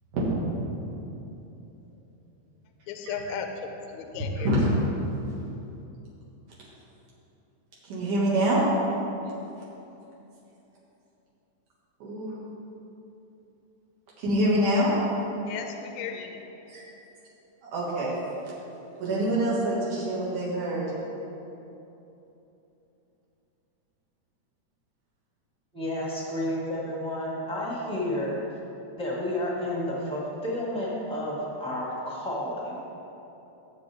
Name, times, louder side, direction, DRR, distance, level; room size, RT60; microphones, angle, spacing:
voice 1, 2.9-3.5 3.9-4.5 15.5-16.4, left 7 dB, 80° left, 5 dB, 1.8 m, -35 dB
voice 2, 4.3-4.7 7.8-8.6 12.0-12.3 14.2-14.9 16.7-16.8 17.6-18.1 19.0-20.9, right 1 dB, 75° right, -7 dB, 3.2 m, -26 dB
voice 3, 25.7-28.4 29.0-32.8, left 1 dB, 5° left, -5 dB, 0.7 m, -31 dB
15.5 x 7.6 x 3.5 m, 3.0 s
omnidirectional pair, 3.6 m